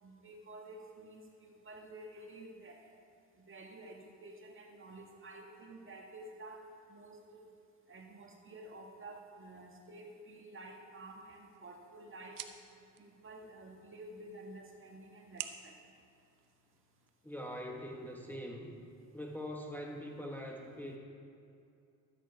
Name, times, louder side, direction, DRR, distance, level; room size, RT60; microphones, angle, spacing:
voice 1, 0.0-3.0 3.4-7.5 7.9-12.4 13.0-15.8, right 2 dB, 30° right, 1 dB, 1.9 m, -51 dB
sound 1, 11.1-17.1, right 9 dB, 55° right, 0.9 m, -52 dB
voice 2, 17.2-18.8 19.1-21.0, equal, 5° left, -1 dB, 1.5 m, -43 dB
12.5 x 9.3 x 4.7 m, 2.5 s
supercardioid pair, 80°, 38 cm